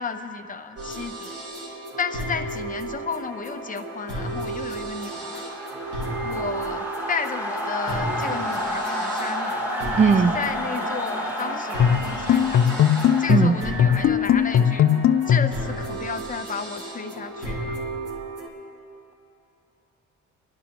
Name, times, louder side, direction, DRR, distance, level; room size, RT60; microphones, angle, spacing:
voice 1, 0.0-1.3 2.0-5.4 6.2-9.6 10.0-12.7 13.2-14.8 15.3-17.8, left 5 dB, 25° left, 6 dB, 0.8 m, -33 dB
sound 1, 0.8-18.5, right 2 dB, 55° right, 2.4 m, -34 dB
sound 2, 3.4-13.3, equal, 5° right, 1.6 m, -31 dB
voice 2, 10.0-10.4 13.3-13.6, right 5 dB, 25° right, 12 dB, 0.4 m, -18 dB
sound 3, 11.8-15.6, left 9 dB, 45° left, 0.4 m, -19 dB
27.0 x 11.5 x 3.0 m, 3.0 s
cardioid pair, 90°, 30 cm